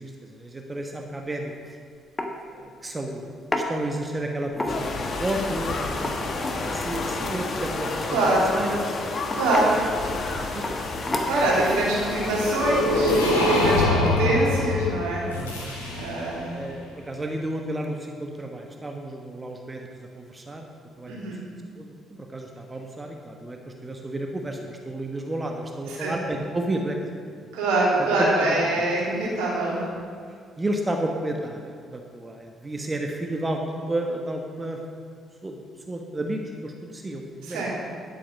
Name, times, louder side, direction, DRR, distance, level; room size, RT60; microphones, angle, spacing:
voice 1, 0.0-1.5 2.4-8.8 9.7-9.8 10.3-10.9 13.7-13.9 15.3-15.8 16.5-20.7 21.0-21.3 21.7-27.5 28.2-28.5 30.6-34.8 35.4-35.6 35.9-37.6, right 1 dB, 25° right, 2 dB, 1.3 m, -32 dB
sound 1, 1.5-1.7 2.2-2.3 3.5-3.7 4.5-5.0 5.9-6.6 8.2-8.5 9.3-9.7 10.6-10.8 11.1-11.5, left 2 dB, 25° left, 1.4 m, -29 dB
sound 2, 4.7-13.9, left 3 dB, 50° left, 1.4 m, -31 dB
voice 2, 8.1-8.4 9.3-9.8 11.2-15.2 15.9-16.6 21.1-21.4 25.9-26.1 27.5-29.8 37.4-37.7, right 2 dB, 70° right, -5 dB, 3.0 m, -24 dB
sound 3, 12.4-16.4, left 1 dB, 85° left, 1.6 m, -24 dB
11.0 x 8.6 x 5.4 m, 2.1 s
figure-of-eight pair, 45°, 0 cm